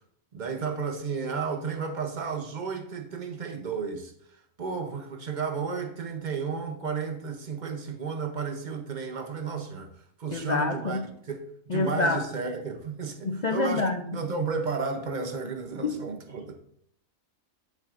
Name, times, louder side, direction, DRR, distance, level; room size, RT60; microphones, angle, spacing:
voice 1, 0.3-4.1 4.6-9.9 10.2-16.6, right 5 dB, 40° right, 0.7 m, -33 dB
voice 2, 10.3-11.0 11.7-12.2 13.2-14.0 15.8-16.0, left 3 dB, 60° left, 0.4 m, -27 dB
8.5 x 7.7 x 2.5 m
omnidirectional pair, 1.5 m